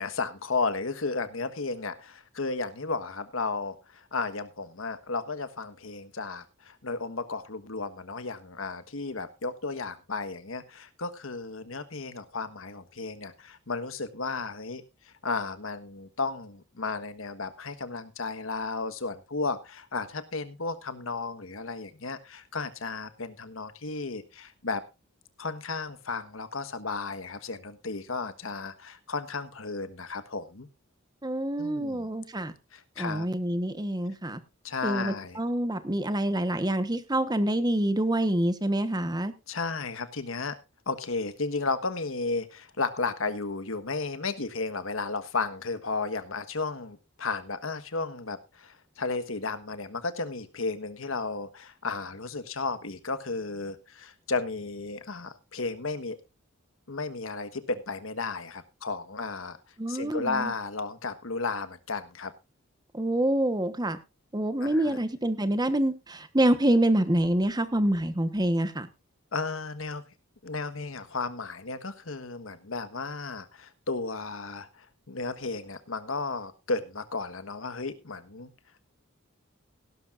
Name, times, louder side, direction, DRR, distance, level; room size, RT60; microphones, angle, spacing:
voice 1, 0.0-24.8 25.4-30.7 31.6-32.1 32.7-33.3 34.6-35.4 39.5-40.6 40.9-56.2 56.9-59.6 59.9-62.3 64.6-65.0 69.3-70.0 70.4-78.5, left 3 dB, 70° left, 11 dB, 1.4 m, -34 dB
voice 2, 31.2-32.5 33.0-34.4 34.8-39.3 59.8-60.5 62.9-64.0 64.3-68.9, right 1 dB, 20° right, 11 dB, 1.1 m, -26 dB
17.0 x 11.5 x 2.5 m, 0.26 s
head